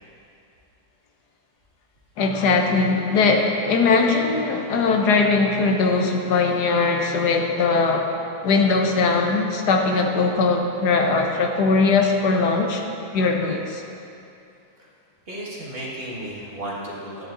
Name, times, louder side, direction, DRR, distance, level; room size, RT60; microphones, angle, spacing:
voice 1, 2.2-8.2 8.4-12.8 13.1-13.8, left 4 dB, 75° left, 3 dB, 1.4 m, -20 dB
voice 2, 15.3-17.3, right 1 dB, 40° right, -5 dB, 1.7 m, -33 dB
10.5 x 9.4 x 3.8 m, 2.6 s
omnidirectional pair, 1.7 m